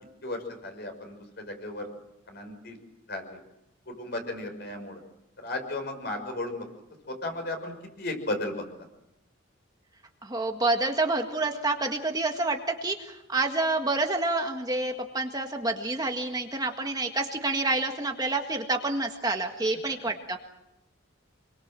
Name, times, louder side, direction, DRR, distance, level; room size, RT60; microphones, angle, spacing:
voice 1, 0.2-1.9 2.3-2.8 3.1-3.4 3.9-5.0 5.4-6.7 7.1-8.6, left 2 dB, 50° left, 5 dB, 6.0 m, -35 dB
voice 2, 10.2-20.5, right 2 dB, 20° right, 3 dB, 1.7 m, -28 dB
27.0 x 23.0 x 7.6 m, 0.87 s
head